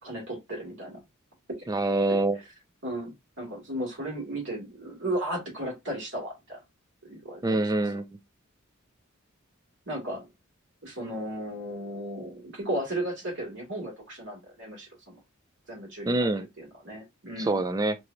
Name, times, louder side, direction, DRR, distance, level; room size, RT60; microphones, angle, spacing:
voice 1, 0.0-1.0 1.6-1.7 2.1-2.2 2.8-6.6 7.1-7.6 9.9-10.2 10.8-15.2 15.7-16.3 16.6-17.6, right 1 dB, 60° right, 2.3 m, -35 dB
voice 2, 1.7-2.4 7.4-8.0 16.1-16.5 17.4-18.0, right 2 dB, 15° right, 0.4 m, -25 dB
4.6 x 2.9 x 2.6 m
head